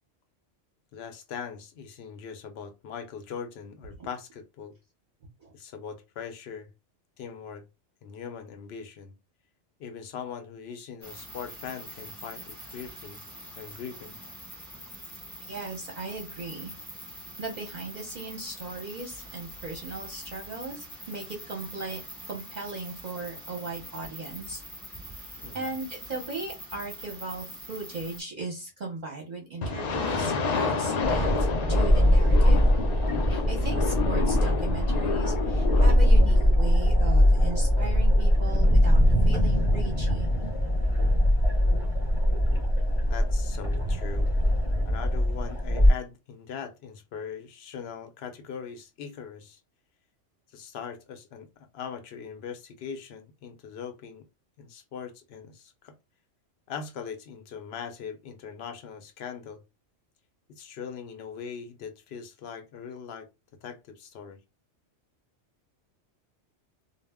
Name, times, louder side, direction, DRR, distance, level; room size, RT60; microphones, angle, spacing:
voice 1, 0.9-4.8 5.5-6.7 7.2-7.6 8.0-9.1 9.8-13.2 13.6-14.1 25.4-25.7 43.1-44.3 44.8-49.6 50.5-51.5 51.7-54.2 54.6-55.9 56.7-59.6 60.6-63.3 63.6-64.4, left 7 dB, 65° left, 0.7 m, -40 dB
sound 1, 11.0-28.2, equal, ahead, 1.0 m, -44 dB
voice 2, 15.4-16.7 17.4-22.0 22.3-24.6 25.1-32.7 33.3-40.3, right 3 dB, 45° right, 0.7 m, -37 dB
sound 2, 29.6-36.5, left 4 dB, 80° left, 0.3 m, -30 dB
sound 3, 31.0-45.9, equal, 30° left, 0.7 m, -22 dB
2.1 x 2.1 x 3.4 m
omnidirectional pair, 1.3 m